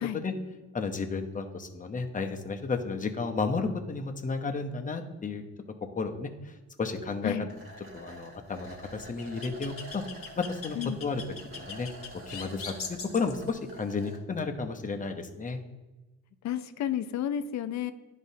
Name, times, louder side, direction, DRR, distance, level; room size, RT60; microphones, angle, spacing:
voice 1, 0.7-5.4 5.9-6.5 6.8-7.3 7.9-10.0 10.4-11.2 11.5-11.9 12.3-15.6, left 4 dB, 25° left, 5 dB, 0.8 m, -32 dB
sound 1, 7.5-14.2, right 1 dB, 45° right, 2.0 m, -48 dB
sound 2, 8.5-13.5, left 5 dB, 50° left, 1.2 m, -42 dB
voice 2, 16.4-17.9, left 10 dB, 65° left, 11 dB, 0.6 m, -31 dB
10.5 x 4.1 x 2.7 m, 1.2 s
cardioid pair, 90°, 30 cm